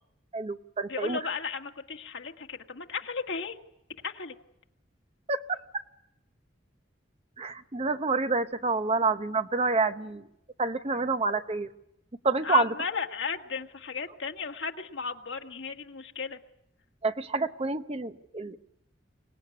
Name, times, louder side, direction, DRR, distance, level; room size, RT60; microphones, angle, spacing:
voice 1, 0.3-1.2 5.3-5.8 7.4-10.3 10.6-11.7 12.2-12.7 17.0-18.6, right 3 dB, 35° right, 10 dB, 0.8 m, -28 dB
voice 2, 0.9-3.6 4.0-4.3 12.4-16.4, left 5 dB, 75° left, 4 dB, 1.7 m, -35 dB
25.0 x 18.5 x 9.7 m, 0.85 s
head